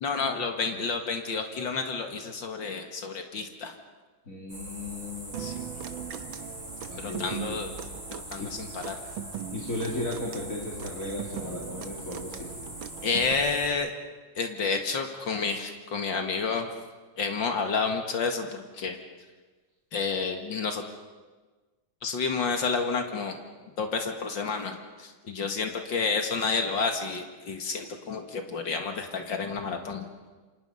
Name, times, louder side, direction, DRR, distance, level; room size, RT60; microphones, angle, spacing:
voice 1, 0.0-3.7 5.4-5.7 7.0-7.7 8.3-9.0 13.0-13.9 14.4-16.7 17.2-19.0 19.9-20.8 22.0-23.4 23.8-30.1, left 4 dB, 70° left, 5 dB, 2.5 m, -30 dB
voice 2, 4.3-5.4 6.9-7.6 8.4-8.5 9.5-12.5, left 2 dB, 40° left, -2 dB, 3.1 m, -35 dB
sound 1, 4.5-13.7, right 1 dB, 40° right, 8.6 m, -42 dB
Human voice / Acoustic guitar, 5.3-13.3, right 10 dB, 80° right, 1.9 m, -40 dB
28.5 x 25.5 x 5.6 m, 1.3 s
omnidirectional pair, 2.1 m